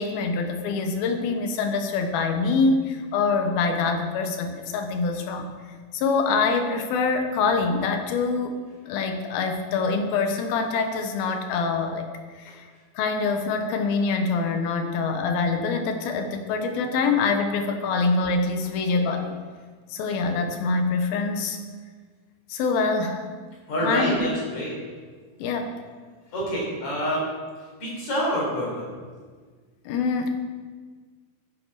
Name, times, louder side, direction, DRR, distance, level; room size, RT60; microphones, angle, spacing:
voice 1, 0.0-5.5 5.9-12.1 12.3-12.6 13.0-19.3 19.9-21.6 22.5-23.2 23.8-24.3 25.4-25.8 29.9-30.3, left 4 dB, 85° left, 5 dB, 2.9 m, -25 dB
voice 2, 23.7-24.8 26.3-27.3 27.8-28.9, equal, 50° left, -4 dB, 5.1 m, -27 dB
13.0 x 10.0 x 4.8 m, 1.6 s
omnidirectional pair, 4.3 m